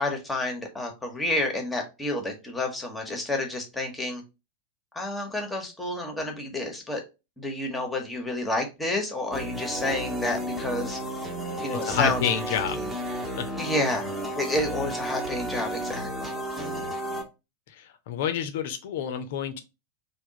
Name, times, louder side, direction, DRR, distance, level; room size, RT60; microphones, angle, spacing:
voice 1, 0.0-4.2 4.9-7.0 7.4-11.0 11.6-12.9 13.5-16.9, left 2 dB, 10° left, 1.0 m, -30 dB
sound 1, 9.3-17.2, right 1 dB, 15° right, 1.0 m, -33 dB
voice 2, 11.7-12.8 18.1-19.6, left 9 dB, 55° left, 0.6 m, -28 dB
3.4 x 2.3 x 3.9 m
figure-of-eight pair, 90°, 0 cm